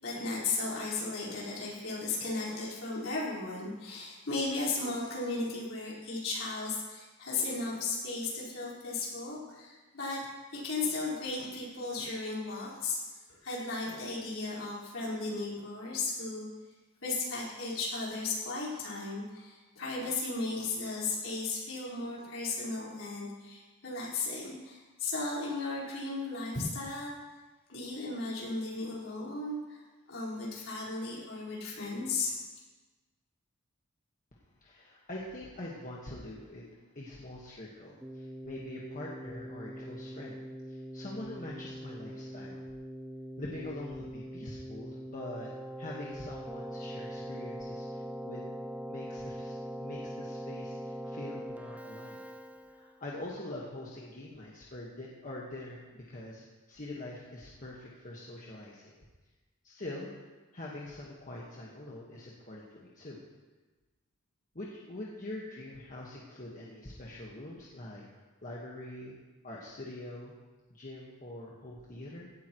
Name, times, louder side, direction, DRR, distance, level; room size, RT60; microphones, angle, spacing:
voice 1, 0.0-10.2 10.5-13.0 13.4-16.4 17.0-27.2 27.7-29.8 30.1-32.3, left 3 dB, 65° left, -6 dB, 4.7 m, -35 dB
voice 2, 34.3-36.7 36.9-40.4 40.7-42.6 43.4-45.5 45.8-48.5 48.9-52.2 52.7-59.0 59.6-60.1 60.5-63.2 64.5-68.0 68.4-69.2 69.4-70.3 70.7-72.3, left 1 dB, 40° left, -4 dB, 1.5 m, -44 dB
Keyboard (musical), 38.0-53.1, equal, 5° right, 0.4 m, -42 dB
17.0 x 12.5 x 3.1 m, 1.2 s
head